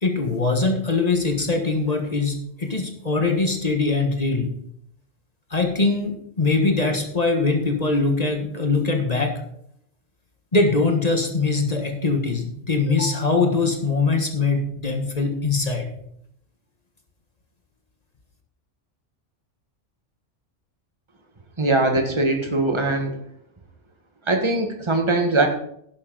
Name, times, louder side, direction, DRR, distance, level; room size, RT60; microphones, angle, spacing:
voice 1, 0.0-4.5 5.5-9.3 10.5-15.9, left 3 dB, 30° left, 4 dB, 1.6 m, -22 dB
voice 2, 21.6-23.2 24.3-25.5, right 2 dB, 25° right, 4 dB, 1.5 m, -21 dB
11.0 x 11.0 x 4.0 m, 0.71 s
omnidirectional pair, 1.3 m